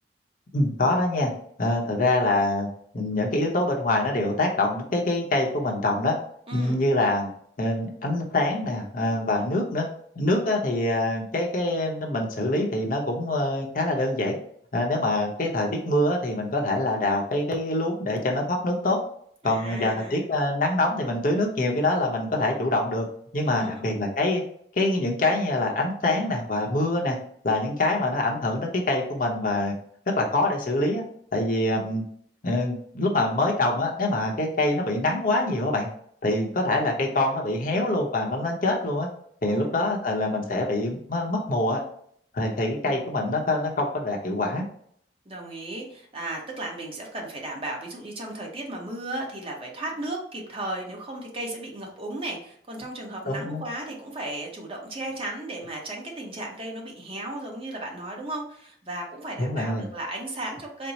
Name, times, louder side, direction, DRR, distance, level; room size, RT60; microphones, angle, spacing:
voice 1, 0.5-1.3 1.6-2.7 2.9-6.2 6.5-7.3 7.6-9.8 10.2-14.4 14.7-19.0 19.4-23.0 23.3-24.4 24.8-27.2 27.4-29.7 30.2-31.0 31.3-32.0 32.4-35.9 36.2-39.1 39.4-41.8 42.3-44.6 53.3-53.6 59.4-59.9, left 2 dB, 50° left, 0 dB, 0.8 m, -25 dB
voice 2, 6.5-6.8 19.4-20.2 23.5-24.0 31.7-31.9 39.5-39.7 42.8-42.9 45.3-60.9, right 1 dB, 30° right, 0 dB, 0.9 m, -35 dB
4.3 x 2.0 x 4.0 m, 0.64 s
head